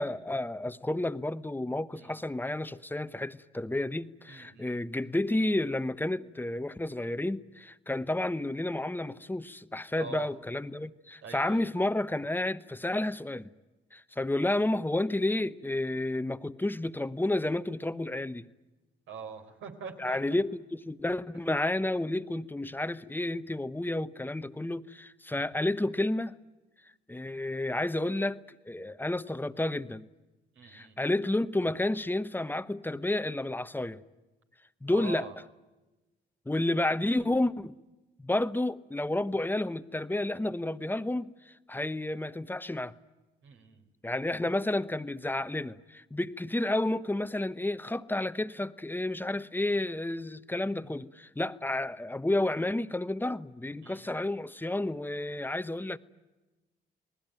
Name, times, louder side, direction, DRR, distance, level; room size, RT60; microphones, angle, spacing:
voice 1, 0.0-13.5 13.9-18.5 20.0-26.3 27.1-30.1 30.6-34.0 34.8-35.3 36.5-37.8 38.2-42.9 44.0-56.0, left 1 dB, 10° left, 0.9 m, -31 dB
voice 2, 4.3-4.8 10.0-10.3 11.2-11.6 19.1-20.2 30.6-31.0 34.9-35.3 43.4-43.8 53.8-54.1, right 5 dB, 75° right, 4.1 m, -44 dB
28.5 x 19.5 x 9.1 m
cardioid pair, 90°, 20 cm